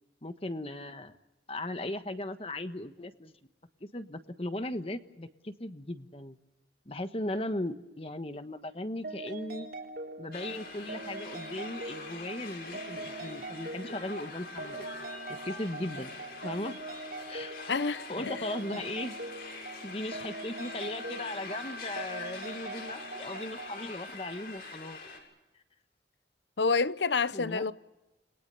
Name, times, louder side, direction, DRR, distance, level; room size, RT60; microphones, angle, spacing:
voice 1, 0.2-1.1 1.5-3.3 3.8-6.4 6.8-9.7 10.2-14.8 15.3-16.2 16.4-16.8 17.2-17.5 18.1-19.1 19.8-25.0 27.3-27.7, left 1 dB, 30° left, 1.3 m, -37 dB
sound 1, 9.0-23.8, right 2 dB, 55° right, 3.6 m, -43 dB
sound 2, 10.3-25.2, left 3 dB, 55° left, 7.2 m, -44 dB
voice 2, 17.7-18.8 26.6-27.7, left 4 dB, 80° left, 0.9 m, -29 dB
30.0 x 21.0 x 6.9 m
head